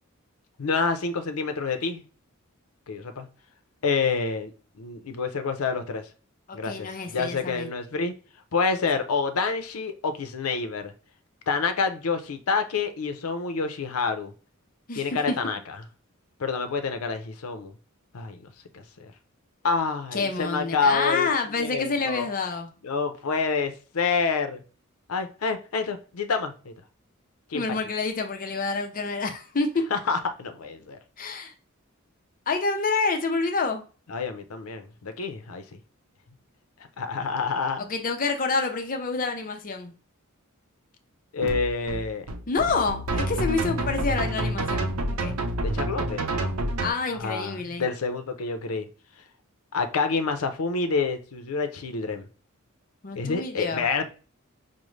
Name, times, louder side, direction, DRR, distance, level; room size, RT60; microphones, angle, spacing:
voice 1, 0.6-2.0 2.9-3.3 3.8-4.5 4.8-6.1 6.5-8.2 8.5-10.9 11.5-14.3 14.9-15.8 16.4-17.7 18.1-18.4 18.7-19.1 19.6-21.3 21.6-22.3 22.8-24.6 25.1-26.7 27.5-27.6 29.9-31.0 34.1-35.6 37.0-37.9 41.3-42.3 45.6-46.5 47.2-48.9 49.7-52.3 53.1-54.1, left 4 dB, 85° left, 0.6 m, -28 dB
voice 2, 6.5-7.7 14.9-15.4 20.1-22.7 27.5-29.9 31.2-31.5 32.5-33.8 37.8-39.9 42.5-45.3 46.8-47.8 53.0-53.8, left 4 dB, 40° left, 0.5 m, -28 dB
sound 1, 41.4-46.9, right 1 dB, 85° right, 0.6 m, -28 dB
5.1 x 2.1 x 3.1 m
head